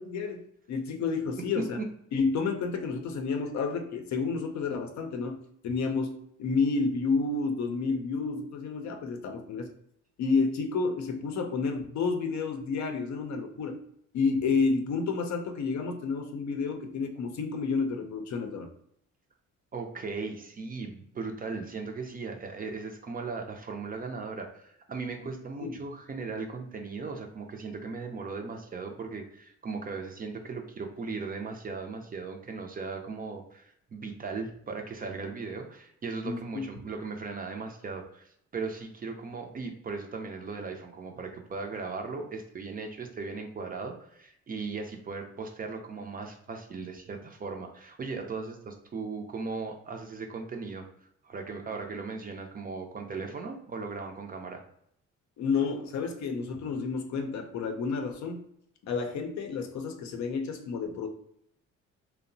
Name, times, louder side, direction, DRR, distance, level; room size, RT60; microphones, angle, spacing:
voice 1, 0.0-1.8 2.1-5.4 5.6-9.7 10.2-13.8 14.1-18.7 25.6-25.7 36.2-36.7 55.4-58.4 58.8-61.1, left 4 dB, 65° left, 5 dB, 0.5 m, -30 dB
voice 2, 1.3-1.9 19.7-50.8 51.2-54.6, right 4 dB, 30° right, 3 dB, 0.4 m, -37 dB
2.7 x 2.0 x 2.6 m, 0.72 s
cardioid pair, 90°, 30 cm